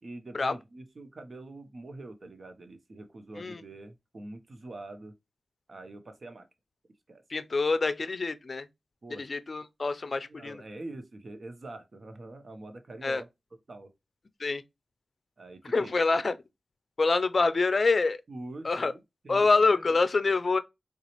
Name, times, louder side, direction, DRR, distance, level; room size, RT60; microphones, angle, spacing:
voice 1, 0.0-5.1 5.7-6.5 7.1-7.2 9.0-9.2 10.2-13.3 13.7-13.9 15.4-15.9 18.3-19.8, right 2 dB, 55° right, 0.8 m, -44 dB
voice 2, 7.3-8.7 9.1-10.6 13.0-13.2 14.4-14.6 15.7-16.4 17.0-18.2 18.6-18.9 19.3-20.6, left 3 dB, 55° left, 0.4 m, -26 dB
3.9 x 2.3 x 3.0 m
cardioid pair, 55°, 0 cm